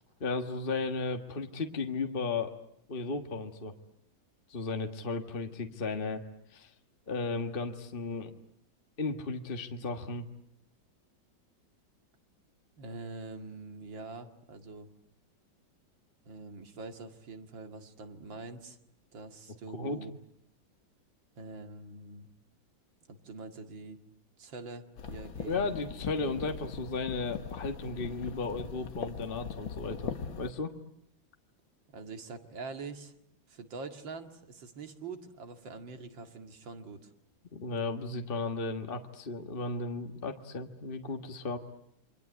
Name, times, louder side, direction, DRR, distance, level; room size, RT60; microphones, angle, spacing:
voice 1, 0.2-2.5 2.9-3.7 4.5-6.2 6.5-6.7 7.1-8.3 9.0-10.3 19.8-20.0 25.4-30.7 37.5-41.6, left 3 dB, 30° left, 6 dB, 1.6 m, -35 dB
voice 2, 12.8-14.9 16.2-18.8 19.1-20.1 21.4-22.3 23.1-24.0 24.4-25.8 31.9-33.1 33.5-37.1, right 3 dB, 70° right, 6 dB, 2.9 m, -44 dB
sound 1, 25.0-30.5, left 6 dB, 85° left, 2.5 m, -40 dB
29.0 x 25.0 x 8.1 m, 0.73 s
omnidirectional pair, 2.1 m